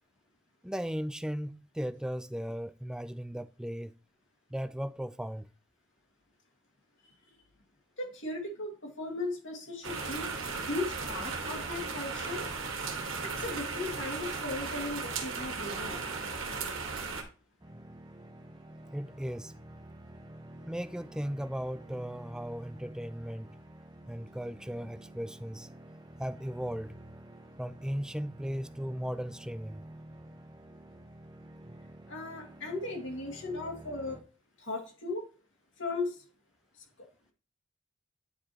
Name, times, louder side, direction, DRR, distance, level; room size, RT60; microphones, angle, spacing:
voice 1, 0.6-3.9 4.5-5.5 18.9-19.5 20.7-23.5 24.1-25.7 26.2-27.0 27.6-29.8, equal, 5° right, 0.3 m, -37 dB
voice 2, 8.0-10.3 10.6-12.4 13.2-16.0 32.1-34.2 34.6-35.2 35.8-36.2, left 2 dB, 60° left, 2.0 m, -37 dB
sound 1, 9.8-17.2, right 4 dB, 70° right, 1.6 m, -36 dB
sound 2, 17.6-34.2, right 1 dB, 20° right, 0.8 m, -50 dB
9.7 x 4.8 x 2.9 m
head